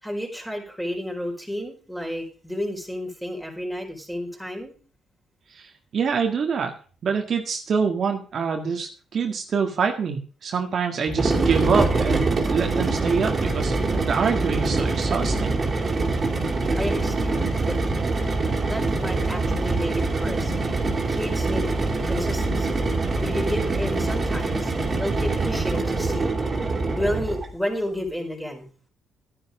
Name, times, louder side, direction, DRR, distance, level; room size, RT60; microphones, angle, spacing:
voice 1, 0.0-4.7 16.8-17.7 18.7-20.5 21.1-21.7 22.0-22.8 23.2-26.3 26.9-28.7, equal, ahead, 1 dB, 4.4 m, -31 dB
voice 2, 5.6-6.7 7.0-15.6, right 5 dB, 55° right, 3 dB, 1.7 m, -25 dB
sound 1, 11.1-27.5, right 3 dB, 35° right, 3.0 m, -24 dB
12.0 x 10.0 x 4.9 m, 0.39 s
cardioid pair, 90°, 0 cm